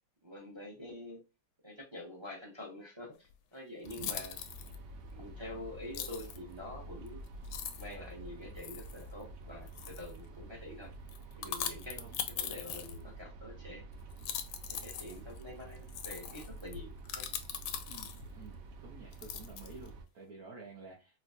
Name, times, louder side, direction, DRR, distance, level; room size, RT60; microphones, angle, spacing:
voice 1, 0.2-1.2 1.6-4.4 5.1-7.2 7.7-10.9 11.4-12.0 12.3-13.8 14.7-17.3, left 1 dB, 30° right, -1 dB, 0.5 m, -46 dB
sound 1, 3.3-3.4 3.9-4.8 5.9-6.4 7.1-7.2 7.4-7.9 8.6-9.0 9.7-10.2 11.1-13.2 14.1-18.4 19.1-19.9, left 9 dB, 80° left, 1.2 m, -41 dB
sound 2, 3.8-20.1, right 3 dB, 85° right, 1.3 m, -49 dB
voice 2, 11.9-12.2 17.9-21.2, right 4 dB, 60° right, -4 dB, 1.4 m, -51 dB
4.3 x 2.3 x 2.4 m, 0.29 s
omnidirectional pair, 1.8 m